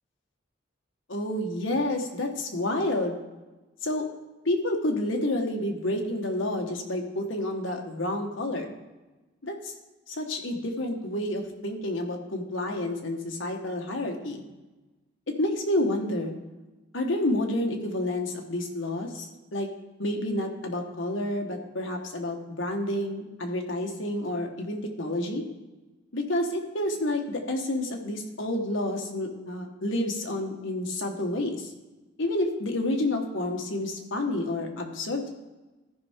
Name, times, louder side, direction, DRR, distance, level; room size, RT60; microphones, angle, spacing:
voice 1, 1.1-3.2 3.8-4.0 4.4-8.7 9.4-9.7 10.1-14.4 15.3-16.3 16.9-19.7 20.0-25.4 26.1-31.7 32.2-35.3, left 1 dB, 70° left, 3 dB, 1.3 m, -29 dB
14.0 x 5.5 x 3.6 m, 1.1 s
head